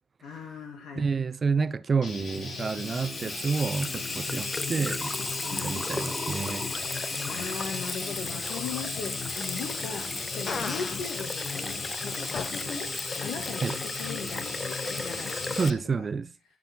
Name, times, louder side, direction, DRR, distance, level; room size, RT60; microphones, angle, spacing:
voice 1, 0.2-1.0 5.5-5.8 7.1-12.9 13.2-15.5 16.0-16.1, left 6 dB, 80° left, 2.5 m, -39 dB
voice 2, 0.9-5.2 5.5-6.7 13.6-13.8 15.5-16.3, right 5 dB, 35° right, 0.7 m, -29 dB
Guitar, 2.0-15.7, left 4 dB, 65° left, 7.5 m, -38 dB
Water tap faucet / Sink (filling or washing), 2.1-15.7, left 3 dB, 20° left, 0.6 m, -35 dB
Fart, 10.5-11.0 12.3-12.5, left 4 dB, 45° left, 1.9 m, -33 dB
18.0 x 6.3 x 3.8 m
cardioid pair, 90°, 0 cm